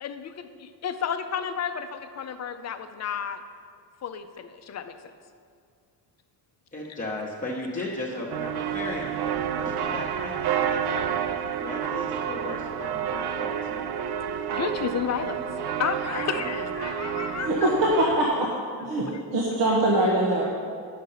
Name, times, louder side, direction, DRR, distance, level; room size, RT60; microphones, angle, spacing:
voice 1, 0.0-3.4 4.0-4.9 6.9-7.0 7.8-7.9 14.5-15.4 15.8-17.7 19.1-19.2, left 7 dB, 40° left, 9 dB, 0.5 m, -32 dB
voice 2, 6.7-11.1 11.6-13.9 16.1-16.5, left 2 dB, 20° left, -4 dB, 0.9 m, -36 dB
sound 1, 8.3-18.2, right 8 dB, 65° right, 0.6 m, -29 dB
voice 3, 17.4-18.5 18.8-20.4, right 1 dB, 90° right, -3 dB, 1.3 m, -23 dB
9.4 x 6.5 x 5.6 m, 2.2 s
cardioid pair, 155°, 42 cm